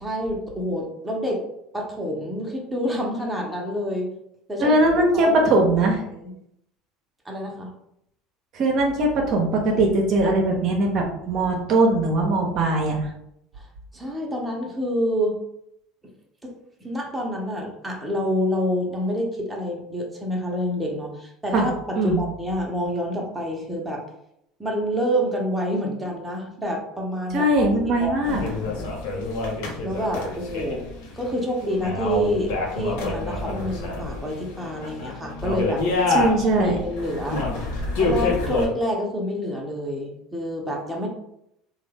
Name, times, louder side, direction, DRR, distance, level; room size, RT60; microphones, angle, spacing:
voice 1, 0.0-1.4 1.7-4.1 4.5-5.5 6.0-6.3 7.2-7.7 13.6-13.7 13.9-15.4 16.4-16.5 16.8-24.0 24.6-28.7 29.8-30.8 31.1-35.8 36.4-37.4 37.9-41.1, equal, 10° right, -1 dB, 0.9 m, -28 dB
voice 2, 4.6-6.0 8.5-13.0 21.5-21.7 22.0-22.2 27.3-28.4 36.1-36.8, right 2 dB, 55° right, 1 dB, 0.7 m, -20 dB
sound 1, 28.2-38.6, left 3 dB, 75° left, 0.8 m, -27 dB
3.0 x 2.3 x 3.4 m, 0.76 s
hypercardioid pair, 85°, 0 cm